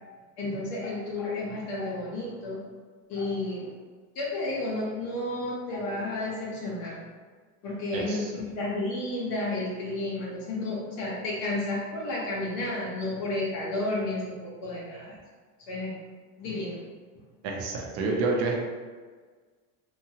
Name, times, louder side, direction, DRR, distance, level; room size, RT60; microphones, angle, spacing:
voice 1, 0.4-2.6 3.1-3.7 4.1-7.0 7.6-15.2 15.7-15.9 16.4-16.8, left 2 dB, 70° left, -5 dB, 0.9 m, -32 dB
voice 2, 7.9-8.3 17.4-18.6, right 3 dB, 70° right, 0 dB, 0.7 m, -28 dB
2.9 x 2.3 x 2.7 m, 1.5 s
supercardioid pair, 105°, 44 cm